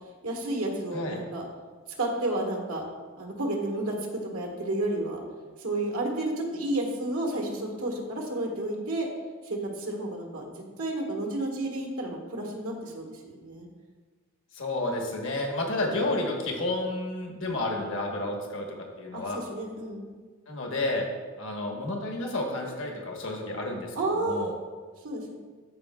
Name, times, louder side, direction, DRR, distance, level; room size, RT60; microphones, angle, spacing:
voice 1, 0.2-1.5 2.0-2.8 3.1-3.9 4.3-5.2 5.6-9.1 9.4-10.5 10.8-13.7 19.1-20.1 23.9-24.5 25.0-25.3, right 1 dB, 85° right, 0 dB, 1.5 m, -31 dB
voice 2, 14.5-18.7 19.0-19.4 20.5-21.0 21.4-24.5, left 2 dB, 60° left, 1 dB, 1.2 m, -31 dB
13.0 x 5.0 x 2.3 m, 1.5 s
head